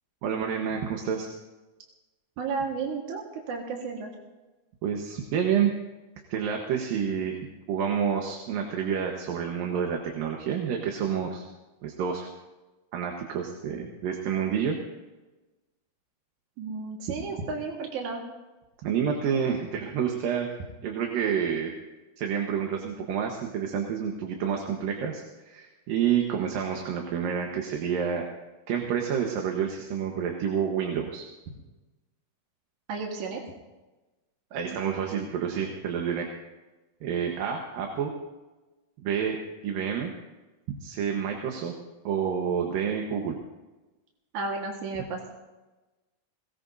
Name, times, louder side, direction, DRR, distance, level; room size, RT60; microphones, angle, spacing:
voice 1, 0.2-1.3 4.8-5.7 6.3-7.4 7.7-11.4 11.8-12.3 12.9-14.8 18.8-20.5 20.8-21.7 22.2-28.2 28.7-31.2 34.5-36.3 37.0-38.1 39.0-39.4 39.6-40.1 40.7-41.7 42.0-43.4, right 7 dB, 85° right, 2 dB, 3.1 m, -28 dB
voice 2, 2.4-4.1 16.6-18.2 32.9-33.4 44.3-45.3, right 4 dB, 65° right, 0 dB, 3.0 m, -32 dB
21.5 x 19.0 x 2.7 m, 1.1 s
omnidirectional pair, 3.9 m